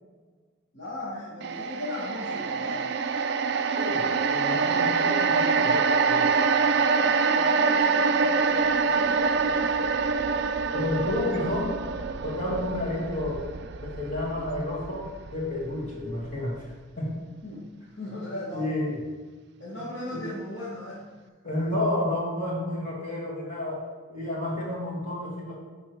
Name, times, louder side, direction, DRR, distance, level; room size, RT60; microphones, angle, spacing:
voice 1, 0.7-2.9 6.8-10.0 17.4-17.7 18.0-18.7 19.6-21.0, left 1 dB, 55° left, -7 dB, 1.4 m, -37 dB
sound 1, 1.4-15.8 16.1-16.3, right 5 dB, 55° right, 0.4 m, -25 dB
voice 2, 3.8-6.4 10.7-11.8 12.2-13.4 13.8-16.6 17.0-17.2 18.5-19.0 19.7-19.8 20.1-20.2 21.4-23.8 24.1-25.5, left 1 dB, 35° left, -6 dB, 2.5 m, -30 dB
11.0 x 3.8 x 4.4 m, 1.4 s
head